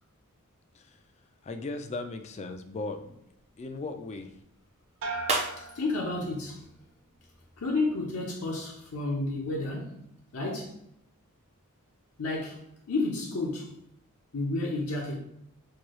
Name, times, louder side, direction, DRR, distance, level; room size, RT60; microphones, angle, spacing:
voice 1, 0.7-3.3 3.6-4.4, left 3 dB, 30° left, 0.3 m, -38 dB
sound 1, 3.3-7.6, right 3 dB, 30° right, 0.5 m, -39 dB
sound 2, 5.0-6.7 7.1-7.7, right 3 dB, 75° right, 0.7 m, -40 dB
voice 2, 5.6-6.6 7.6-10.0 10.3-10.8 12.2-13.7 14.3-15.2, left 2 dB, 75° left, 0.7 m, -31 dB
4.6 x 2.3 x 3.0 m
head